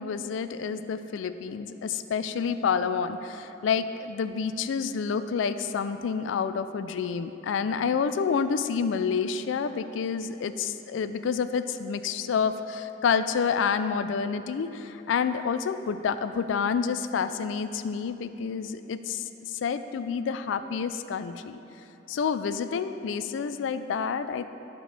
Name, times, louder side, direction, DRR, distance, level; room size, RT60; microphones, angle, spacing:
voice 1, 0.0-21.6 22.1-24.5, left 6 dB, 75° left, 11 dB, 0.3 m, -28 dB
11.5 x 4.5 x 3.3 m, 2.9 s
head